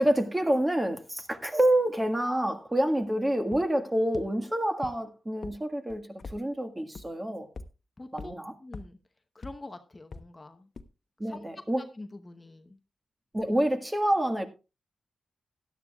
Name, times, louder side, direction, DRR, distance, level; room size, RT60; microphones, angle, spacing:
voice 1, 0.0-6.0 6.3-7.5 8.1-8.5 11.2-11.8 13.3-14.5, right 1 dB, 15° right, 1.6 m, -27 dB
sound 1, 3.5-3.6 4.1-4.2 4.8-4.9 5.4-5.5 5.9-6.4 6.9-7.0 7.6-7.7 8.2-8.3 8.7-8.8 9.4-9.5 10.1-10.2 10.8-10.9, left 4 dB, 50° left, 0.9 m, -40 dB
voice 2, 8.0-8.3 8.6-9.0 9.3-10.7 11.2-11.5 11.9-12.8, left 2 dB, 25° left, 0.9 m, -45 dB
16.5 x 11.5 x 2.3 m
cardioid pair, 85°, 0 cm